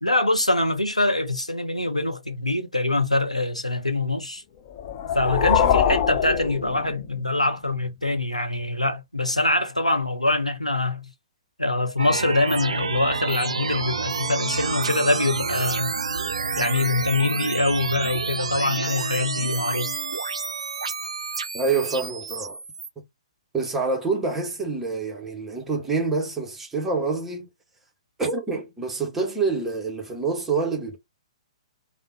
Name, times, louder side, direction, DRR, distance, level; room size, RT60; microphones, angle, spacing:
voice 1, 0.0-4.4 5.1-11.1 11.6-15.9 16.5-19.9, left 2 dB, 90° left, 0.7 m, -24 dB
sound 1, 4.7-7.3, left 9 dB, 35° left, 0.4 m, -23 dB
sound 2, 12.0-22.9, right 5 dB, 65° right, 0.3 m, -29 dB
voice 2, 21.5-22.6 23.5-27.5 28.2-31.0, right 4 dB, 10° right, 0.8 m, -26 dB
3.3 x 2.1 x 2.9 m
figure-of-eight pair, 120°, 3 cm